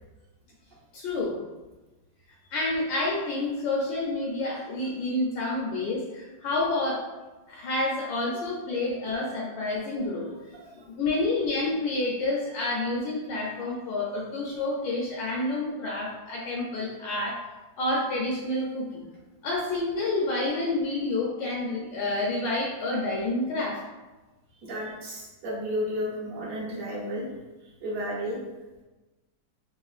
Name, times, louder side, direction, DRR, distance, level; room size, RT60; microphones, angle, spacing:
voice 1, 0.9-1.4 2.5-7.0 7.5-10.3 10.8-17.4 17.8-19.0 19.4-23.8, left 2 dB, 75° left, -3 dB, 1.2 m, -29 dB
voice 2, 24.6-27.2 27.8-28.4, equal, 60° right, -5 dB, 1.0 m, -33 dB
3.6 x 2.4 x 2.3 m, 1.1 s
omnidirectional pair, 2.1 m